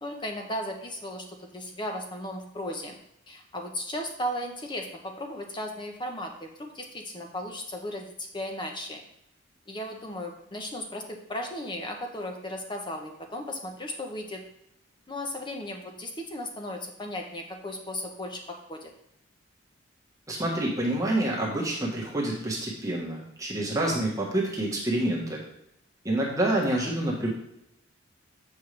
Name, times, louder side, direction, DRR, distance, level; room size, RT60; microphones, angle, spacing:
voice 1, 0.0-3.0 3.3-9.0 9.7-14.4 15.1-18.9, left 1 dB, 20° left, 3 dB, 0.9 m, -36 dB
voice 2, 20.3-25.4 26.0-27.3, right 1 dB, 15° right, -3 dB, 1.3 m, -27 dB
7.8 x 5.4 x 3.3 m, 0.81 s
head